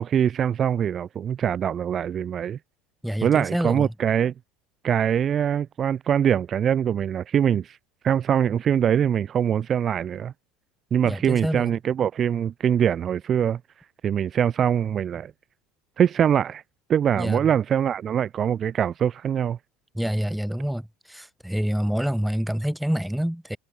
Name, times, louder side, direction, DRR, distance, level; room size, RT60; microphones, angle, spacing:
voice 1, 0.0-2.6 3.2-4.3 4.8-7.8 8.0-10.3 10.9-13.6 14.0-15.3 16.0-16.6 16.9-19.6, right 9 dB, 40° right, 2.7 m, -23 dB
voice 2, 3.0-3.9 11.0-11.7 17.2-17.4 19.9-23.6, equal, ahead, 7.6 m, -27 dB
supercardioid pair, 90°, 0 cm